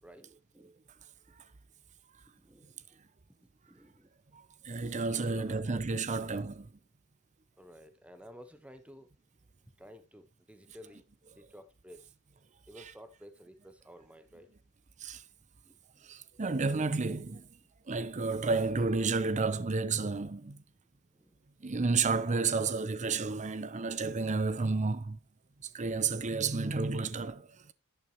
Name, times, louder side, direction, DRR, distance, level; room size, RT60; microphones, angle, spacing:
voice 1, 0.0-1.0 2.4-3.0 3.6-4.1 4.9-6.3 7.6-9.1 9.8-12.1 12.7-14.5 15.6-16.1 21.1-21.4, equal, 5° right, 1.0 m, -54 dB
voice 2, 4.6-6.6 15.0-15.2 16.1-17.5 17.9-20.6 21.6-25.2 25.7-27.5, right 4 dB, 35° right, 0.7 m, -31 dB
11.0 x 9.1 x 3.0 m
head